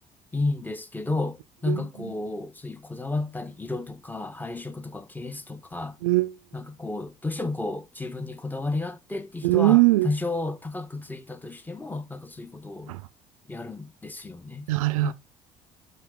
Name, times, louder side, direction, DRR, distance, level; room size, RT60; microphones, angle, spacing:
voice 1, 0.3-6.0 6.5-12.9 13.5-14.7 15.0-15.1, left 2 dB, 10° left, 1.6 m, -32 dB
voice 2, 9.4-10.1 12.9-13.0 14.7-15.1, right 19 dB, 90° right, 0.6 m, -20 dB
12.0 x 4.0 x 4.0 m
hypercardioid pair, 65°, 17 cm